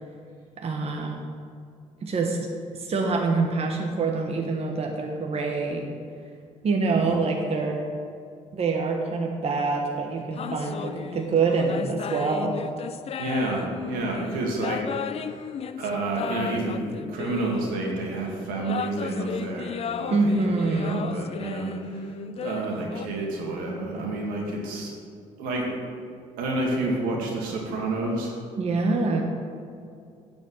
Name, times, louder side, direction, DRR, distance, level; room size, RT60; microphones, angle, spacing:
voice 1, 0.6-1.2 2.0-2.4 2.7-5.8 6.6-7.8 8.5-12.6 20.1-21.1 28.6-29.2, right 4 dB, 45° right, 1 dB, 1.2 m, -25 dB
sound 1, 10.4-17.9 18.5-23.1, left 7 dB, 45° left, 0.5 m, -35 dB
voice 2, 13.2-14.8 15.8-22.1 22.4-25.0 25.4-25.8 26.4-28.4, right 2 dB, 90° right, -1 dB, 2.1 m, -29 dB
9.7 x 5.1 x 7.9 m, 2.4 s
supercardioid pair, 80°, 14 cm